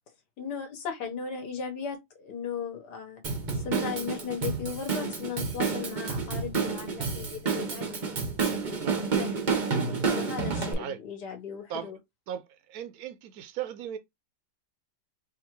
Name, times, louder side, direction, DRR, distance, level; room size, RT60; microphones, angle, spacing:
voice 1, 0.4-3.2 3.5-8.9 9.2-9.4 10.1-12.0, left 6 dB, 70° left, 1.8 m, -37 dB
Drum kit / Drum, 3.2-10.7, right 5 dB, 45° right, 0.6 m, -30 dB
voice 2, 12.3-14.0, right 9 dB, 70° right, 1.0 m, -37 dB
4.9 x 2.6 x 3.1 m
omnidirectional pair, 1.9 m